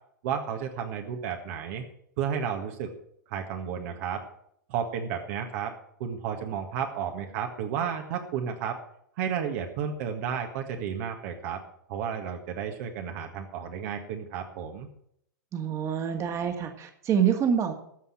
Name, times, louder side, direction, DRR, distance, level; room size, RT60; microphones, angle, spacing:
voice 1, 0.2-1.8 2.2-2.9 3.3-4.2 4.7-5.7 6.0-8.8 9.2-11.6 11.9-14.9, right 8 dB, 50° right, 4 dB, 1.7 m, -32 dB
voice 2, 15.5-17.7, right 8 dB, 30° right, 6 dB, 1.9 m, -26 dB
14.0 x 5.6 x 8.6 m, 0.70 s
hypercardioid pair, 115°, 10 cm